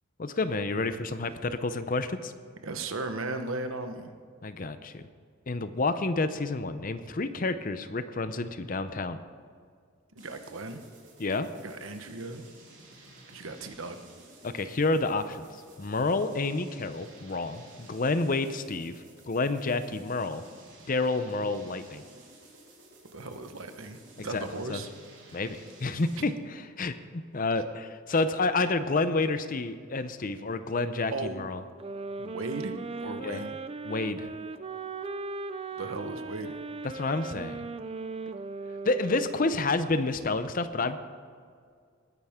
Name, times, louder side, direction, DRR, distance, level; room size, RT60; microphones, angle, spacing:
voice 1, 0.2-2.3 4.4-5.0 5.5-9.2 11.2-11.5 14.4-15.5 15.8-20.4 20.9-22.0 24.2-24.8 25.3-31.6 33.2-33.4 33.8-34.3 36.9-37.7 38.8-41.0, left 3 dB, 40° left, 11 dB, 0.6 m, -29 dB
voice 2, 2.6-4.1 10.1-10.8 11.6-12.4 13.3-14.0 23.1-24.9 31.1-31.5 32.2-33.6 35.8-36.5, right 2 dB, 80° right, 7 dB, 1.1 m, -37 dB
sound 1, 10.2-26.4, right 2 dB, 60° right, 3.8 m, -54 dB
sound 2, 31.8-39.8, right 4 dB, 30° right, 0.4 m, -38 dB
19.5 x 10.0 x 3.7 m, 2.1 s
head